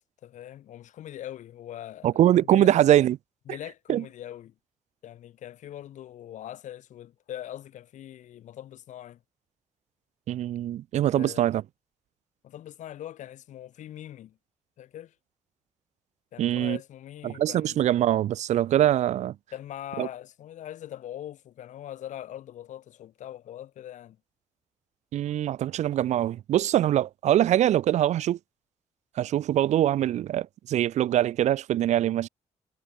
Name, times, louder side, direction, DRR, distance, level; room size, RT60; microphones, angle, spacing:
voice 1, 0.2-2.8 3.5-4.5 5.0-9.2 11.1-11.5 12.4-14.4 14.8-15.1 16.3-17.9 19.5-24.2, left 11 dB, 80° left, 3.5 m, -41 dB
voice 2, 2.0-3.2 3.9-4.0 10.3-11.6 16.4-16.8 17.2-19.3 20.0-20.1 25.1-28.4 29.2-32.3, right 12 dB, 70° right, 0.6 m, -23 dB
cardioid pair, 150°, 12 cm